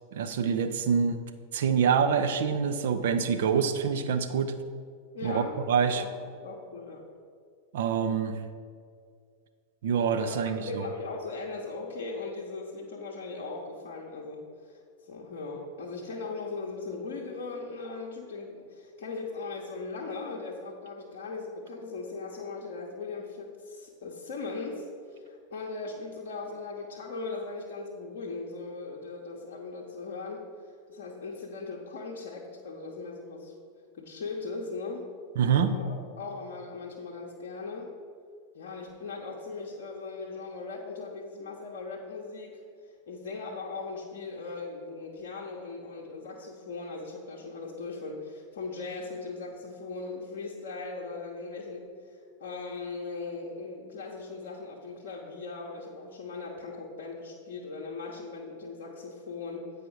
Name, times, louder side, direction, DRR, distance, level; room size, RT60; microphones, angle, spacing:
voice 1, 0.1-1.2 1.5-4.5 5.2-6.0 7.7-8.3 9.8-10.9 35.4-35.8, right 6 dB, 55° right, 9 dB, 0.5 m, -26 dB
voice 2, 5.1-5.6 5.9-6.1 6.3-7.0 10.2-33.5 33.9-35.1 35.6-37.9 38.5-59.7, left 3 dB, 55° left, -3 dB, 0.8 m, -39 dB
8.6 x 4.8 x 4.7 m, 2.1 s
figure-of-eight pair, 90°, 0 cm